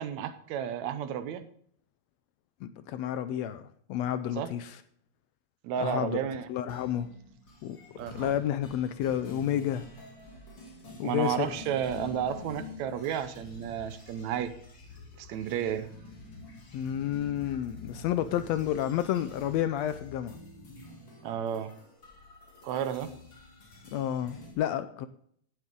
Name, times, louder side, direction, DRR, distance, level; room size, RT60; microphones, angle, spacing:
voice 1, 0.0-1.5 4.4-4.5 5.6-6.5 8.0-8.3 11.0-14.5 15.2-15.9 21.2-21.7 22.6-23.1, right 8 dB, 75° right, 2.0 m, -32 dB
voice 2, 2.6-4.8 5.8-6.2 6.5-7.1 7.6-7.8 8.1-9.8 11.0-11.5 16.7-20.4 23.9-25.1, left 11 dB, 75° left, 1.6 m, -30 dB
sound 1, 6.7-24.5, left 3 dB, 40° left, 3.3 m, -48 dB
17.0 x 8.0 x 3.7 m
omnidirectional pair, 3.4 m